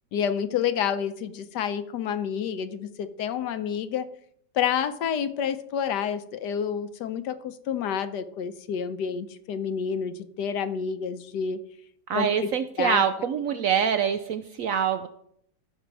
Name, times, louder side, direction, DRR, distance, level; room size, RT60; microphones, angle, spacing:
voice 1, 0.1-4.1 4.5-11.6 12.1-12.5 12.8-13.0, left 8 dB, 70° left, 11 dB, 1.3 m, -29 dB
voice 2, 12.1-15.1, right 7 dB, 75° right, 10 dB, 0.7 m, -25 dB
14.0 x 6.4 x 4.7 m, 0.70 s
omnidirectional pair, 2.0 m